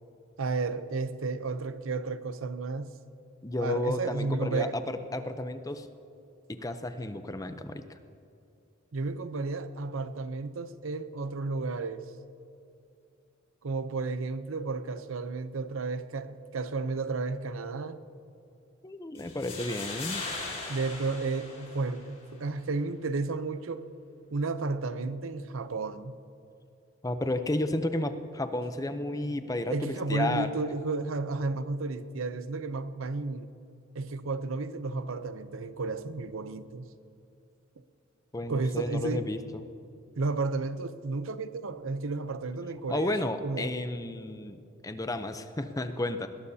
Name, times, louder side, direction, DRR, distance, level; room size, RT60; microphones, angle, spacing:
voice 1, 0.4-3.0 3.6-4.8 8.9-12.0 13.6-18.0 20.7-23.8 24.3-26.2 29.7-33.5 33.9-36.9 38.5-39.3 40.2-43.7, right 3 dB, 85° right, 0.7 m, -32 dB
voice 2, 3.4-5.9 6.5-8.0 18.8-20.2 27.0-29.8 30.1-30.5 38.3-39.6 42.9-46.3, left 1 dB, 15° left, 0.6 m, -32 dB
sound 1, 19.2-22.2, left 3 dB, 35° left, 4.4 m, -39 dB
21.0 x 18.5 x 2.8 m
head